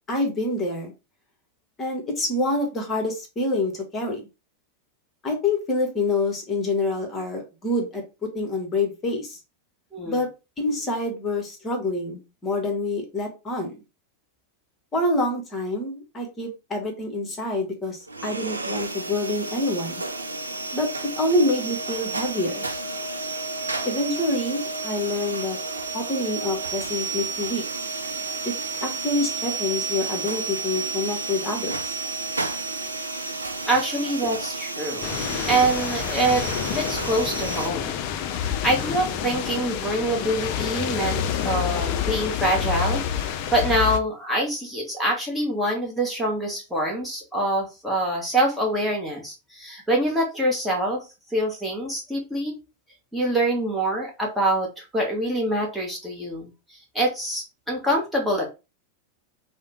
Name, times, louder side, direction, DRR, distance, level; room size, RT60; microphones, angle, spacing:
voice 1, 0.1-0.9 1.8-4.2 5.2-8.0 8.3-9.4 10.0-10.3 10.6-13.8 14.9-20.0 20.7-20.9 21.2-22.7 23.8-25.6 25.9-27.6 28.4-28.5 28.8-32.0, left 2 dB, 20° left, 2 dB, 1.1 m, -26 dB
sound 1, 18.1-37.7, right 3 dB, 80° right, 0.5 m, -31 dB
voice 2, 33.7-35.1 35.5-38.0 38.3-52.6 53.1-58.5, right 1 dB, 5° right, -2 dB, 1.0 m, -25 dB
sound 2, 35.0-44.0, left 9 dB, 45° left, 0.4 m, -28 dB
4.7 x 2.1 x 2.9 m, 0.28 s
figure-of-eight pair, 90°, 0 cm